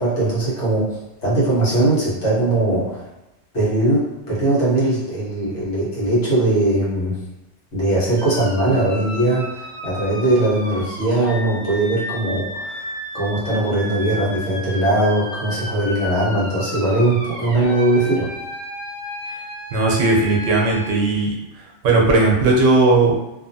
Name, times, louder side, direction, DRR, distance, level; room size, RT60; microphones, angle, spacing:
voice 1, 0.0-3.0 3.5-7.2 7.7-12.9 13.1-18.3, right 1 dB, 65° left, -7 dB, 1.4 m, -20 dB
sound 1, 8.2-20.9, equal, 35° right, 0.6 m, -33 dB
voice 2, 19.7-21.3 21.8-23.2, right 3 dB, 80° right, -1 dB, 1.0 m, -16 dB
2.7 x 2.5 x 2.6 m, 0.95 s
omnidirectional pair, 1.3 m